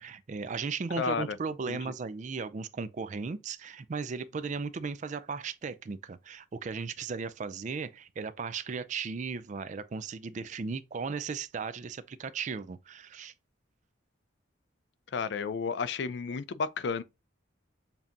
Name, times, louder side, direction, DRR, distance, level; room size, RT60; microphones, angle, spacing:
voice 1, 0.0-13.3, right 5 dB, 40° right, 0.3 m, -36 dB
voice 2, 1.0-1.4 1.7-1.8 15.1-17.0, left 5 dB, 60° left, 0.4 m, -32 dB
7.1 x 2.8 x 2.5 m
head